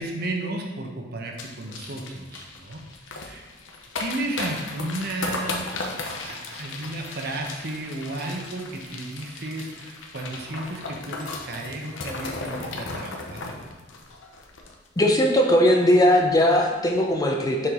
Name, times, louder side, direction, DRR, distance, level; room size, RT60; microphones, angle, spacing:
voice 1, 0.0-2.8 3.1-3.5 4.0-13.4, right 2 dB, 55° right, 1 dB, 0.9 m, -33 dB
sound 1, 1.4-15.2 15.5-15.6 15.8-16.1 16.5-16.7, left 3 dB, 85° left, 0.8 m, -36 dB
voice 2, 15.0-17.7, left 1 dB, 20° left, 2 dB, 0.6 m, -19 dB
6.3 x 4.5 x 3.7 m, 1.2 s
head